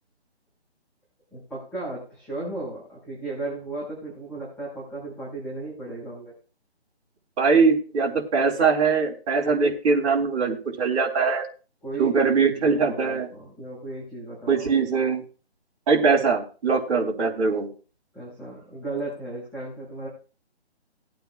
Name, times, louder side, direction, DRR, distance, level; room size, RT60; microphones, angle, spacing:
voice 1, 1.3-6.3 11.8-14.7 18.1-20.1, right 2 dB, 5° left, -8 dB, 5.1 m, -35 dB
voice 2, 7.4-11.4 12.0-13.3 14.5-15.2 15.9-17.7, right 5 dB, 30° right, -1 dB, 3.7 m, -22 dB
20.5 x 9.3 x 2.3 m, 0.35 s
hypercardioid pair, 160°, 33 cm